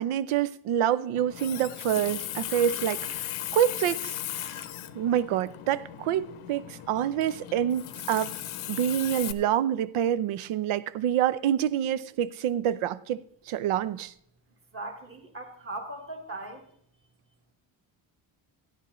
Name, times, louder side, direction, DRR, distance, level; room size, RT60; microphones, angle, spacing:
voice 1, 0.0-4.5 4.9-8.3 8.7-13.2 13.5-14.1, right 10 dB, 85° right, 0.7 m, -27 dB
Water tap faucet, 1.2-9.3, left 12 dB, 90° left, 0.8 m, -37 dB
voice 2, 14.7-16.6, right 2 dB, 25° right, 1.5 m, -39 dB
15.0 x 10.0 x 3.1 m
cardioid pair, 160°, 48 cm